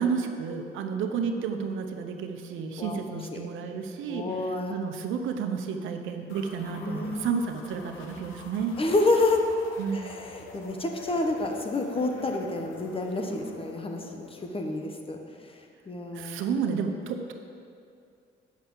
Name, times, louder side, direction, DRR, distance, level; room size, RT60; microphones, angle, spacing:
voice 1, 0.0-8.8 9.8-10.0 16.1-17.3, right 6 dB, 85° right, 5 dB, 0.7 m, -31 dB
voice 2, 2.8-3.4 4.1-4.8 6.7-7.3 8.8-9.4 9.9-15.2 15.9-16.4, left 2 dB, 25° left, 3 dB, 1.1 m, -29 dB
sound 1, 6.3-14.9, left 4 dB, 85° left, 1.1 m, -45 dB
7.4 x 5.5 x 7.6 m, 2.5 s
cardioid pair, 90°, 20 cm